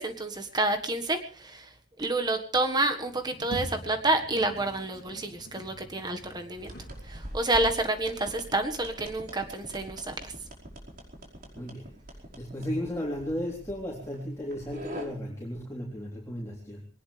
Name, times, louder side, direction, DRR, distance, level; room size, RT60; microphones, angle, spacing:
voice 1, 0.0-1.7 2.0-6.7 7.0-10.3, right 2 dB, 20° right, 6 dB, 1.6 m, -29 dB
Sliding door, 3.0-7.5, equal, 55° left, 2.4 m, -44 dB
sound 1, 6.6-15.1, right 1 dB, 45° right, 5.1 m, -44 dB
voice 2, 11.5-16.9, equal, 15° left, -3 dB, 3.6 m, -35 dB
22.0 x 19.0 x 3.4 m, 0.36 s
head